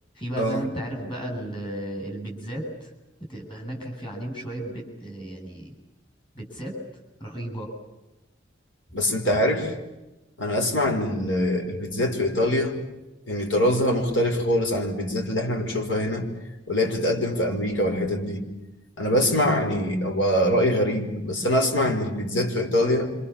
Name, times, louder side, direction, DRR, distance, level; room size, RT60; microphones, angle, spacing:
voice 1, 0.1-2.9 3.3-5.7 6.3-6.7 7.2-7.7, right 1 dB, 25° left, 7.9 m, -34 dB
voice 2, 8.9-9.7 10.4-12.8 13.3-16.3 16.7-18.5 19.0-23.1, left 1 dB, 80° left, 5.4 m, -24 dB
28.5 x 26.5 x 7.4 m
head